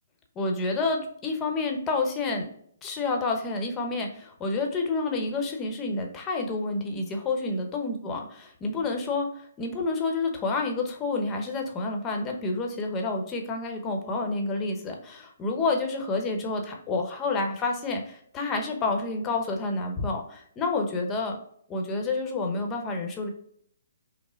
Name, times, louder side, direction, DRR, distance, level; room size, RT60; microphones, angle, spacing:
voice 1, 0.4-2.5 2.8-8.2 8.6-21.4 21.7-23.3, left 3 dB, 20° left, 3 dB, 0.9 m, -29 dB
5.6 x 2.1 x 3.7 m, 0.64 s
hypercardioid pair, 145°, 0 cm